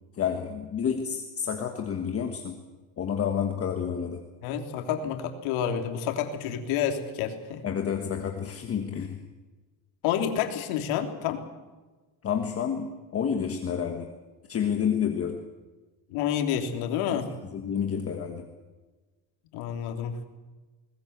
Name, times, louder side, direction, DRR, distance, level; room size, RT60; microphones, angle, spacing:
voice 1, 0.2-2.6 3.0-4.2 7.6-9.2 12.2-14.1 14.5-15.4 17.1-18.5, left 7 dB, 30° left, 4 dB, 1.5 m, -29 dB
voice 2, 4.4-7.6 10.0-11.4 16.1-17.3 19.5-20.1, left 9 dB, 75° left, 5 dB, 3.4 m, -29 dB
20.5 x 20.5 x 8.1 m, 1.3 s
cardioid pair, 175°, 49 cm